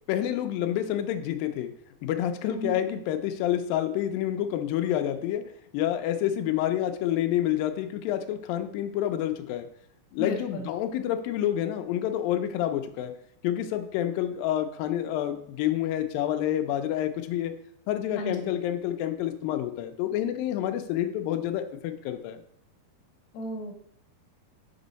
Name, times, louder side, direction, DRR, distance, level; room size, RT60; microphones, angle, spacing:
voice 1, 0.1-1.7 2.0-5.4 5.7-9.7 10.1-13.1 13.4-17.5 17.9-22.4, left 11 dB, 80° left, 6 dB, 2.2 m, -28 dB
voice 2, 10.2-10.7 18.2-18.4 23.3-23.7, right 1 dB, 60° left, 1 dB, 2.1 m, -34 dB
6.2 x 5.3 x 4.0 m, 0.67 s
omnidirectional pair, 4.5 m